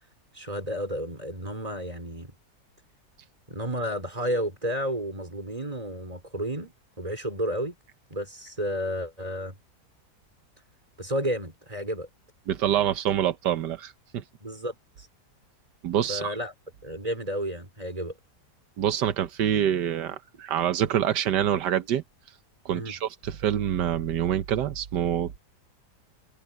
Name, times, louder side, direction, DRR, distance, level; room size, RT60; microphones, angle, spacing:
voice 1, 0.3-2.3 3.5-7.7 8.1-9.6 11.0-12.1 14.4-15.1 16.1-16.5 16.8-18.1 22.7-23.0, equal, 20° right, 4.8 m, -32 dB
voice 2, 12.5-14.2 15.8-16.4 18.8-22.0 22.6-25.4, right 10 dB, 90° right, 1.6 m, -26 dB
omnidirectional pair, 1.8 m